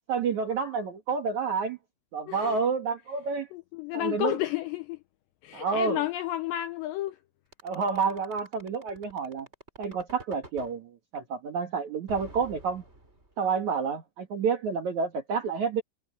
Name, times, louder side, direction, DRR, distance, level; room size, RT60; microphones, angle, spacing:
voice 1, 0.1-1.8 2.1-3.5 3.9-4.4 5.5-6.0 7.6-9.5 9.8-12.8 13.4-15.8, right 5 dB, 65° right, 1.8 m, -29 dB
voice 2, 2.3-2.6 3.5-5.0 5.4-7.2, left 15 dB, 90° left, 2.4 m, -31 dB
sound 1, 7.5-10.7 12.1-13.5, right 2 dB, 15° right, 4.4 m, -47 dB
omnidirectional pair, 6.0 m